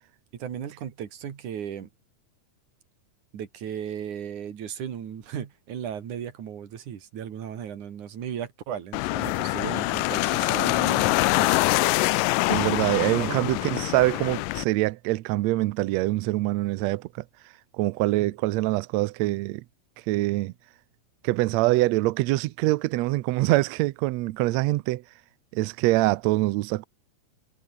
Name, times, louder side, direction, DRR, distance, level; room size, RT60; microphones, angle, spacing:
voice 1, 0.4-1.9 3.3-11.6 13.2-13.5 18.2-18.3, right 9 dB, 65° right, 3.6 m, -36 dB
sound 1, 8.9-14.6, left 21 dB, 85° left, 2.2 m, -24 dB
voice 2, 12.5-17.1 17.8-19.6 20.1-20.5 21.2-25.0 25.5-26.9, right 19 dB, 90° right, 1.5 m, -24 dB
omnidirectional pair, 3.8 m